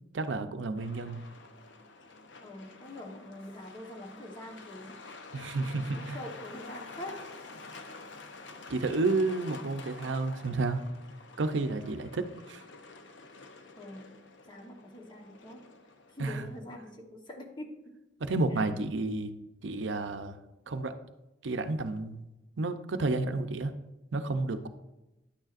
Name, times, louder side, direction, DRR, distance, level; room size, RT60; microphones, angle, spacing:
voice 1, 0.1-1.3 5.3-6.2 8.7-10.8 11.4-12.6 16.2-16.5 18.2-19.3 19.6-20.4 20.7-20.9 21.4-22.3 22.6-23.7 24.1-24.7, right 3 dB, 75° right, 9 dB, 0.6 m, -31 dB
Truck, 0.8-16.6, left 3 dB, 75° left, 0.7 m, -49 dB
voice 2, 2.4-5.0 5.9-7.3 13.8-14.2 14.5-15.7 16.1-17.9, left 1 dB, 25° left, 2 dB, 1.1 m, -44 dB
9.9 x 9.0 x 2.5 m, 0.99 s
head